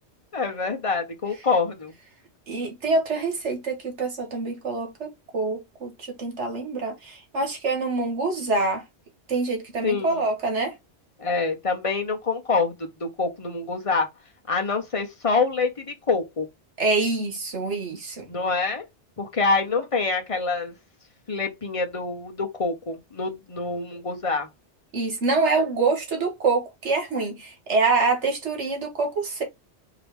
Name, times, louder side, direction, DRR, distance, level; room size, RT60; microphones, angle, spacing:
voice 1, 0.3-1.9 9.8-10.3 11.2-14.1 14.5-16.5 18.3-18.8 19.2-20.7 21.3-24.5, left 4 dB, 30° left, 1.0 m, -26 dB
voice 2, 2.5-8.8 9.3-10.8 16.8-18.3 24.9-29.4, right 3 dB, 90° right, 1.9 m, -25 dB
4.7 x 2.9 x 3.5 m
omnidirectional pair, 1.2 m